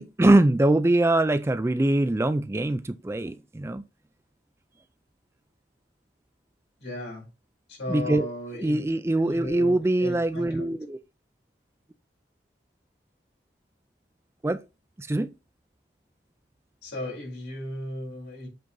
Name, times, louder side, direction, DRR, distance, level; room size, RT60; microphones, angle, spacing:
voice 1, 0.0-3.8 7.9-8.3 8.6-11.0 14.4-14.6 15.0-15.3, right 1 dB, 15° right, 0.3 m, -23 dB
voice 2, 6.8-7.3 7.7-8.8 9.1-10.7 16.8-18.5, left 1 dB, 75° left, 4.5 m, -36 dB
7.9 x 3.8 x 3.8 m
head